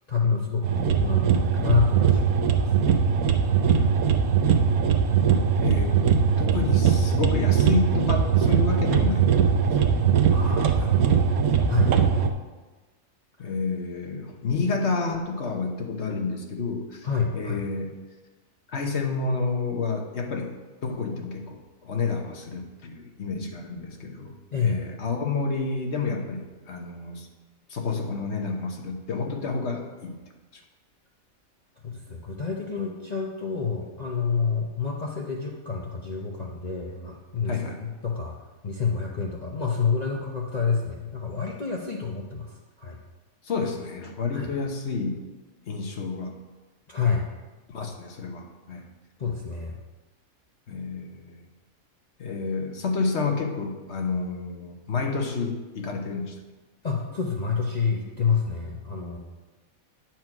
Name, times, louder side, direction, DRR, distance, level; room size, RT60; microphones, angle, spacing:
voice 1, 0.1-2.7 10.3-11.1 11.7-11.9 13.4-13.5 17.0-17.6 24.5-24.9 31.8-38.4 38.6-43.0 44.3-44.5 46.9-47.2 48.7-48.8 49.2-49.8 56.8-59.2, left 5 dB, 40° left, -2 dB, 0.7 m, -28 dB
sound 1, 0.6-12.3, right 7 dB, 90° right, 1.2 m, -21 dB
voice 2, 5.6-6.0 6.4-9.8 10.4-11.6 13.4-17.1 17.3-18.0 18.7-20.5 20.8-24.3 24.6-27.3 27.7-30.2 30.5-30.6 37.5-37.9 43.4-45.2 45.7-46.4 47.7-48.8 50.7-51.4 52.2-56.4, left 4 dB, 55° left, 3 dB, 1.3 m, -30 dB
9.2 x 4.5 x 5.9 m, 1.2 s
omnidirectional pair, 1.5 m